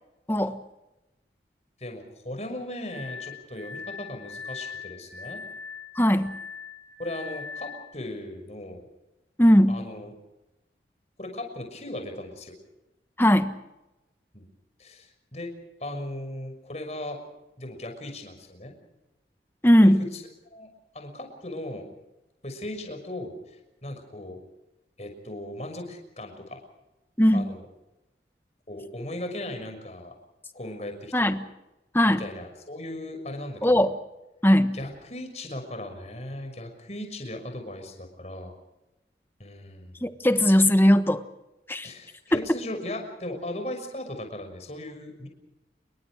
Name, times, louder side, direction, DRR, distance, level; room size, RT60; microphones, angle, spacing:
voice 1, 0.3-0.6 6.0-6.4 9.4-9.8 13.2-13.6 19.6-20.1 27.2-27.5 31.1-31.4 31.9-32.2 33.6-33.9 34.4-34.8 40.0-41.2 41.7-41.9 42.3-42.4, equal, 10° left, 9 dB, 1.3 m, -19 dB
voice 2, 1.8-5.4 7.0-8.9 9.7-10.1 11.2-12.5 14.3-14.4 14.8-15.5 15.8-17.2 17.6-18.7 19.8-20.7 20.9-21.9 22.4-24.4 25.0-26.6 27.3-27.6 28.7-30.1 30.5-31.3 32.1-33.9 34.7-38.5 39.4-40.0 41.8-45.3, left 1 dB, 40° left, 5 dB, 6.2 m, -37 dB
Glass, 2.9-7.9, left 5 dB, 75° right, 3.8 m, -40 dB
28.5 x 23.5 x 4.9 m, 0.96 s
head